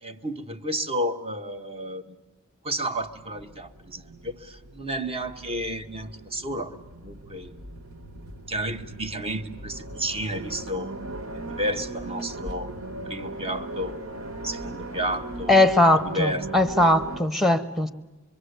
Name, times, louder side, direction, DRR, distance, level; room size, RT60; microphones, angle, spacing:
voice 1, 0.0-2.2 2.6-7.5 8.5-12.7 13.0-14.0 14.4-15.6 15.9-16.5, right 1 dB, 25° right, 8 dB, 1.3 m, -32 dB
sound 1, 3.0-17.2, right 2 dB, 75° right, 2.5 m, -38 dB
voice 2, 15.5-17.9, left 1 dB, ahead, 10 dB, 1.2 m, -20 dB
26.0 x 23.5 x 8.1 m, 1.1 s
head